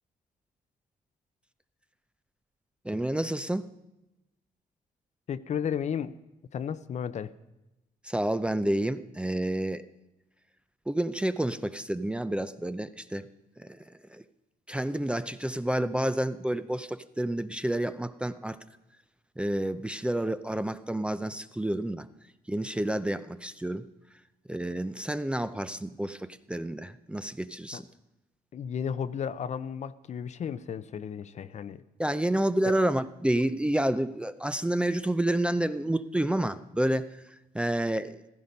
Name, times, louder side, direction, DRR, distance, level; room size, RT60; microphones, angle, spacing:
voice 1, 2.8-3.7 8.0-9.8 10.9-13.3 13.6-14.2 14.7-18.6 19.4-22.1 22.5-23.9 24.5-27.9 32.0-37.2 37.5-38.2, right 1 dB, 5° right, 12 dB, 0.5 m, -29 dB
voice 2, 5.3-6.1 6.5-7.3 27.7-27.8 28.5-31.8 32.6-32.7, left 8 dB, 50° left, 14 dB, 0.7 m, -33 dB
15.5 x 14.5 x 5.3 m, 0.96 s
cardioid pair, 135°, 16 cm